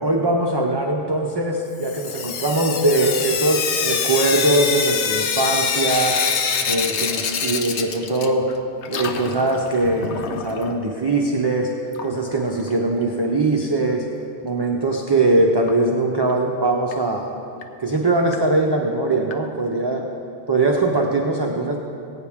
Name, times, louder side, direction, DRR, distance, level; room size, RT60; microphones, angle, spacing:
voice 1, 0.0-6.2 6.7-8.5 8.9-11.7 12.0-14.1 14.4-17.3 17.8-20.0 20.5-21.8, right 2 dB, 25° right, 0 dB, 0.6 m, -21 dB
Sink (filling or washing) / Drip, 1.8-8.6 8.8-10.8 11.9-12.0 12.3-12.4 12.7-12.8 15.7-15.8 16.3-16.4 16.9-17.0 17.6-17.7 18.3-18.4 19.3-19.4, left 6 dB, 80° left, 1.0 m, -25 dB
19.5 x 9.0 x 3.6 m, 2.8 s
omnidirectional pair, 1.1 m